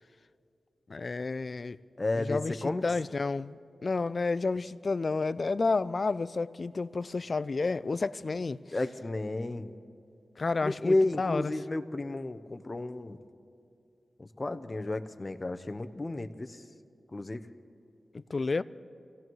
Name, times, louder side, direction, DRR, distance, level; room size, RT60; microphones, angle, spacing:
voice 1, 0.9-1.8 2.2-8.6 10.4-11.5 18.1-18.6, left 3 dB, 55° left, 0.4 m, -31 dB
voice 2, 2.0-2.8 8.7-9.7 10.6-13.2 14.2-16.6 17.1-17.4, left 2 dB, 35° left, 0.8 m, -32 dB
27.0 x 17.0 x 3.1 m
cardioid pair, 55°, 0 cm